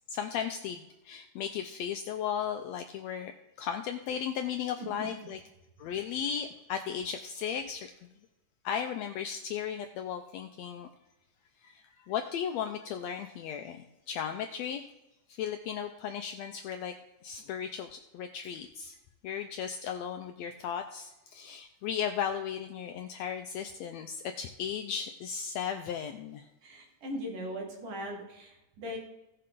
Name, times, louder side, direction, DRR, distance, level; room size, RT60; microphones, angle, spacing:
voice 1, 0.1-3.3 3.6-5.4 5.8-8.1 8.6-10.9 11.6-14.9 15.3-16.9 17.2-19.0 19.2-26.5, left 8 dB, 85° left, 6 dB, 1.5 m, -36 dB
voice 2, 4.8-5.3 26.6-29.0, equal, 75° right, 0 dB, 3.7 m, -39 dB
16.5 x 6.6 x 3.8 m, 0.93 s
omnidirectional pair, 3.7 m